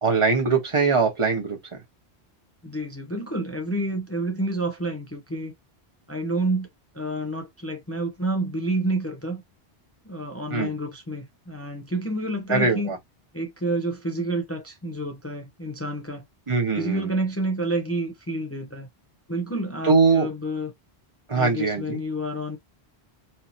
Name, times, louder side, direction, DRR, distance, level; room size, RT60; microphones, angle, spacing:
voice 1, 0.0-1.6 10.5-10.7 12.5-13.0 16.5-17.1 19.9-20.3 21.3-22.0, right 4 dB, 30° right, 1.1 m, -21 dB
voice 2, 2.6-5.5 6.1-6.7 6.9-9.4 10.0-12.9 13.3-16.2 16.7-18.9 19.3-20.7 21.3-22.6, right 1 dB, 20° left, 0.5 m, -29 dB
4.4 x 2.8 x 2.7 m
omnidirectional pair, 1.1 m